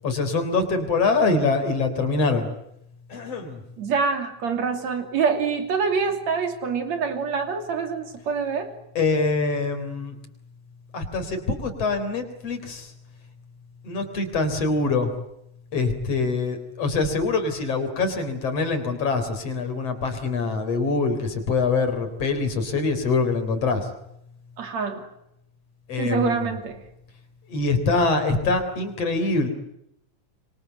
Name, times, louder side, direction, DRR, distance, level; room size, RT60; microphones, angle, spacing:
voice 1, 0.0-2.5 3.1-3.6 8.9-10.1 10.9-12.9 13.8-15.1 15.7-23.9 25.9-26.5 27.5-29.5, left 3 dB, 45° left, 7 dB, 4.7 m, -24 dB
voice 2, 3.8-8.7 24.6-25.1 26.0-26.8, right 5 dB, 55° right, 7 dB, 4.0 m, -25 dB
26.0 x 24.5 x 8.1 m, 0.79 s
omnidirectional pair, 3.9 m